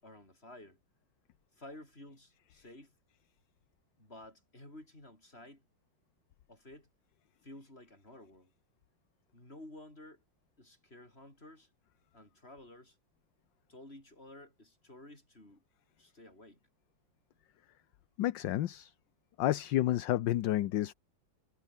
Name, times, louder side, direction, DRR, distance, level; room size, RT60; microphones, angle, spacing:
voice 1, 0.0-0.8 1.5-2.9 4.0-5.6 6.5-6.9 7.4-8.5 9.3-10.2 10.6-11.7 12.1-13.0 13.7-15.6 16.0-16.6, left 1 dB, 30° left, 7.6 m, -53 dB
voice 2, 18.2-18.9 19.4-20.9, left 14 dB, 70° left, 1.4 m, -30 dB
omnidirectional pair, 2.1 m